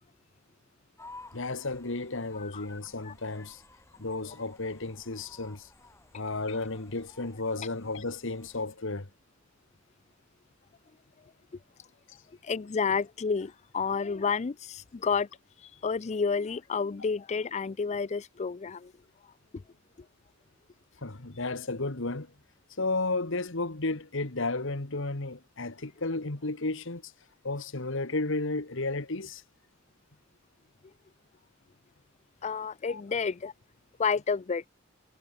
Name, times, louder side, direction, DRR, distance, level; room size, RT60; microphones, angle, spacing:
sound 1, 1.0-8.6, left 2 dB, 15° left, 7.1 m, -54 dB
voice 1, 1.3-3.6 4.0-5.7 6.1-9.1 21.0-22.3 22.8-27.1 27.4-29.4 32.9-33.0, left 2 dB, 65° left, 1.9 m, -33 dB
voice 2, 12.4-15.3 15.6-18.9 19.5-19.6 32.4-33.5 34.0-34.6, left 5 dB, 35° left, 0.4 m, -30 dB
head